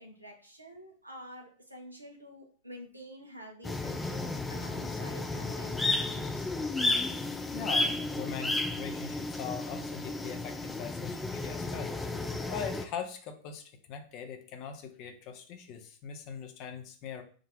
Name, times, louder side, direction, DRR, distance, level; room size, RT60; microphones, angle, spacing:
voice 1, 0.0-6.5, right 1 dB, 85° right, 2 dB, 1.0 m, -49 dB
sound 1, 3.6-12.8, left 2 dB, 10° left, 0.4 m, -33 dB
voice 2, 7.5-11.9 12.2-17.2, left 7 dB, 40° left, 6 dB, 0.8 m, -41 dB
3.8 x 2.7 x 4.7 m, 0.43 s
figure-of-eight pair, 90°, 0 cm